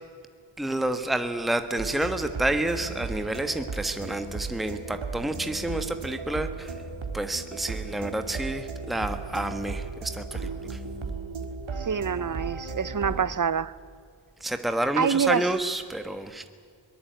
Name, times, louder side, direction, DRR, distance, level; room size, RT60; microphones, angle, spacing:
voice 1, 0.6-6.7 7.1-10.8 14.4-16.4, right 1 dB, ahead, 1.3 m, -29 dB
sound 1, 1.8-13.3, right 4 dB, 85° right, 2.2 m, -35 dB
voice 2, 11.8-13.7 15.0-15.5, right 7 dB, 45° right, 0.8 m, -26 dB
22.5 x 18.5 x 9.2 m
wide cardioid pair, 60°, 46 cm